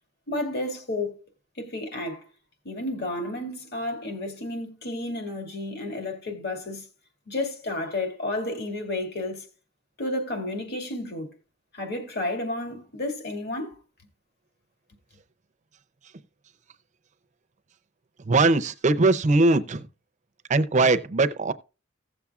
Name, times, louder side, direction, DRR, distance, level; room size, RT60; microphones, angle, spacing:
voice 1, 0.3-1.2 1.6-2.3 2.6-6.9 7.3-9.5 10.0-11.3 11.7-13.8, left 2 dB, 55° left, 2.2 m, -31 dB
voice 2, 18.2-19.9 20.5-21.5, right 3 dB, 35° right, 0.6 m, -20 dB
16.5 x 7.1 x 2.4 m
head